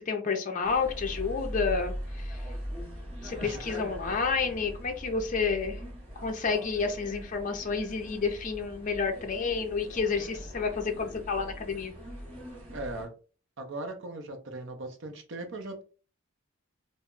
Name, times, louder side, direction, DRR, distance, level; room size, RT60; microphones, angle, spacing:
voice 1, 0.0-2.4 3.2-5.8 6.2-11.9, left 5 dB, 35° left, 4 dB, 0.4 m, -30 dB
sound 1, 0.6-13.1, equal, 25° right, 0.9 m, -41 dB
voice 2, 12.7-13.1 13.6-15.8, right 2 dB, 55° right, 5 dB, 0.6 m, -39 dB
2.2 x 2.0 x 3.6 m, 0.36 s
head